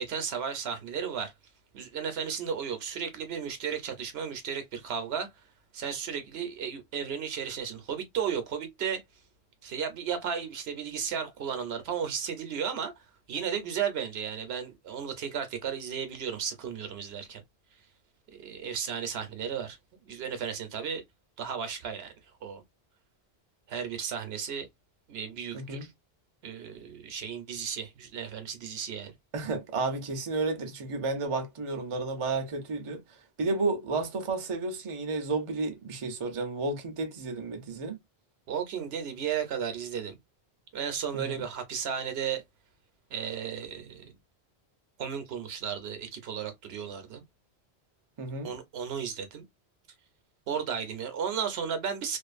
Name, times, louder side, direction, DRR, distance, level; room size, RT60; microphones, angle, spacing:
voice 1, 0.0-1.3 1.7-5.3 5.7-9.0 9.6-12.9 13.3-17.4 18.3-19.8 20.0-21.0 21.4-22.1 22.4-22.6 23.7-24.7 25.1-25.9 26.4-29.1 38.5-40.2 40.7-42.4 43.1-44.2 45.0-47.2 48.4-49.4 50.5-52.2, right 7 dB, 70° right, 0.9 m, -34 dB
voice 2, 25.5-25.9 29.3-38.0 41.1-41.4 48.2-48.5, right 3 dB, 40° right, 0.5 m, -32 dB
2.5 x 2.4 x 2.4 m
omnidirectional pair, 1.1 m